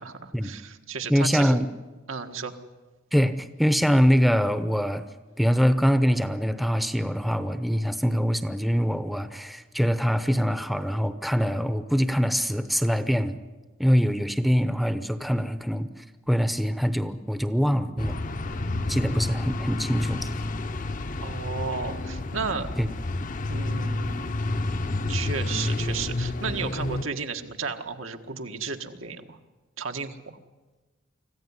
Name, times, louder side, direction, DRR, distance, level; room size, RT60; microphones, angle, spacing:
voice 1, 0.0-1.7 2.1-2.6 21.2-22.7 23.5-29.4 29.8-30.4, right 5 dB, 80° right, 5 dB, 1.7 m, -34 dB
voice 2, 1.1-1.7 3.1-5.0 5.4-13.4 13.8-18.2 18.9-20.3 22.8-22.9, equal, ahead, 10 dB, 0.8 m, -24 dB
sound 1, 18.0-27.0, left 2 dB, 40° left, 0.8 m, -30 dB
25.5 x 15.0 x 9.8 m, 1.2 s
head